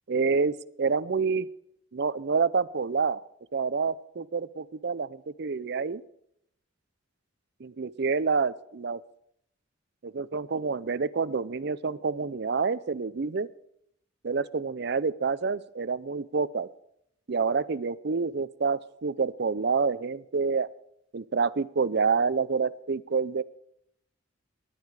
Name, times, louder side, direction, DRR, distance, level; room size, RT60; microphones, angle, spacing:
voice 1, 0.1-1.5 1.9-3.2 3.5-6.0 7.6-9.0 10.0-13.5 14.2-16.7 17.3-20.7 21.1-23.4, right 5 dB, 55° right, 17 dB, 0.5 m, -28 dB
18.5 x 10.5 x 4.8 m, 0.73 s
head